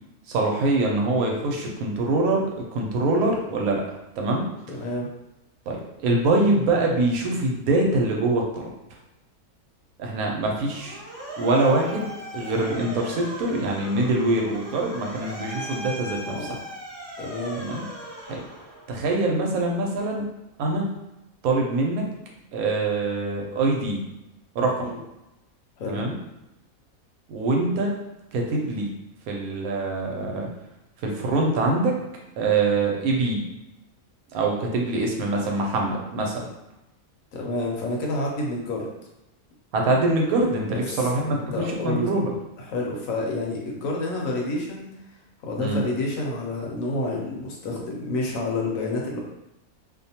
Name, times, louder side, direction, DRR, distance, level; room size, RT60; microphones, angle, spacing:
voice 1, 0.3-3.8 4.2-4.5 5.7-8.7 10.0-11.0 11.4-16.4 17.6-17.8 18.3-18.4 18.9-20.3 20.6-20.9 21.4-22.1 22.5-24.0 24.5-24.9 25.9-26.2 27.3-27.9 28.3-28.9 29.3-30.5 31.0-32.0 32.4-33.4 34.3-36.4 39.7-42.3 45.6-45.8, right 2 dB, 75° right, 0 dB, 1.0 m, -24 dB
voice 2, 4.7-5.1 16.3-16.6 17.2-17.6 24.8-25.0 25.8-26.0 37.3-38.9 40.7-42.1 42.6-44.9 45.4-49.2, left 2 dB, 70° left, -1 dB, 1.0 m, -29 dB
Motor vehicle (road) / Siren, 10.5-19.1, right 1 dB, 30° right, 0.5 m, -38 dB
2.6 x 2.2 x 2.7 m, 0.92 s
omnidirectional pair, 1.6 m